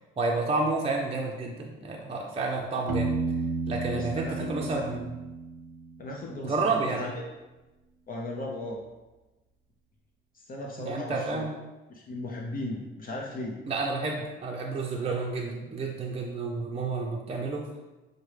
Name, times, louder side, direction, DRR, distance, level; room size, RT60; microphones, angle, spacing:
voice 1, 0.2-3.1 3.7-5.1 6.4-7.1 10.8-11.5 13.7-17.7, right 3 dB, 30° right, -1 dB, 0.5 m, -30 dB
Piano, 2.9-6.6, right 3 dB, 85° right, 0.5 m, -33 dB
voice 2, 3.9-4.8 6.0-7.2 8.1-8.8 10.3-11.5 11.9-13.6, left 2 dB, 45° left, -1 dB, 0.6 m, -37 dB
5.9 x 2.2 x 3.2 m, 1.1 s
cardioid pair, 90°, 20 cm